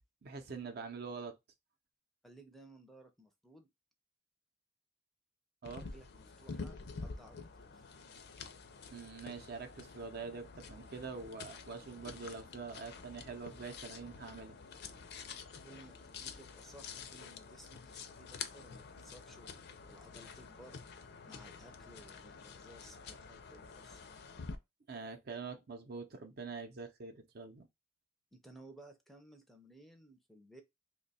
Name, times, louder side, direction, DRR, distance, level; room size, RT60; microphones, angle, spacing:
voice 1, 0.2-1.4 5.6-5.9 8.9-14.6 24.9-27.7, right 4 dB, 55° right, 0.6 m, -45 dB
voice 2, 2.2-3.7 5.7-7.8 15.6-21.0 21.3-24.0 28.3-30.6, right 1 dB, ahead, 0.4 m, -58 dB
sound 1, 5.6-24.6, left 5 dB, 60° left, 0.5 m, -49 dB
2.9 x 2.2 x 4.0 m
head